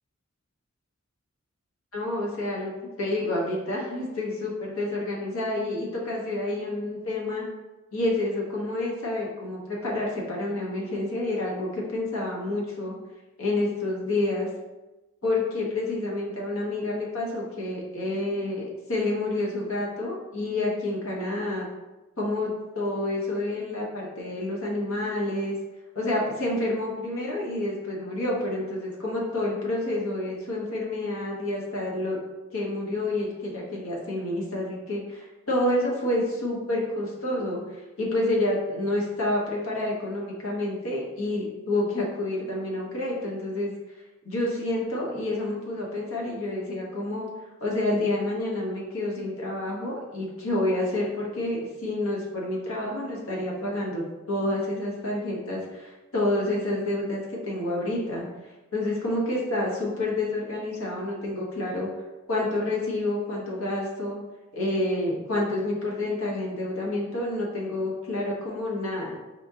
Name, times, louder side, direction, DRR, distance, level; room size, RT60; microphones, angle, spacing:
voice 1, 1.9-7.5 7.9-13.0 13.4-14.5 15.2-21.7 22.2-25.6 25.9-32.2 32.5-43.7 44.2-47.3 47.6-58.2 58.7-61.9 62.3-64.2 64.5-69.2, left 1 dB, 80° left, -3 dB, 1.1 m, -29 dB
4.4 x 3.6 x 2.7 m, 1.1 s
head